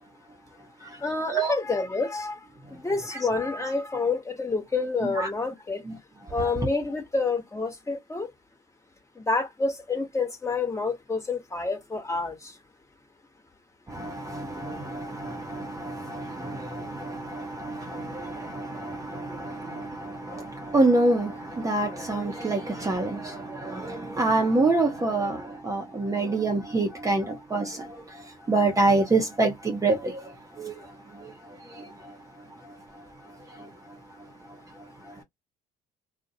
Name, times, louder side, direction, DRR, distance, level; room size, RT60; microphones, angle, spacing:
voice 1, 1.0-2.4 2.7-5.8 6.3-8.3 9.2-12.5, left 3 dB, 15° left, 1.2 m, -28 dB
voice 2, 14.0-19.9 20.3-20.4 20.7-23.3 23.6-25.4 25.6-27.2 27.5-27.8 28.5-30.0 30.6-30.7, right 2 dB, 20° right, 0.7 m, -26 dB
2.5 x 2.0 x 2.7 m
hypercardioid pair, 70°, 17 cm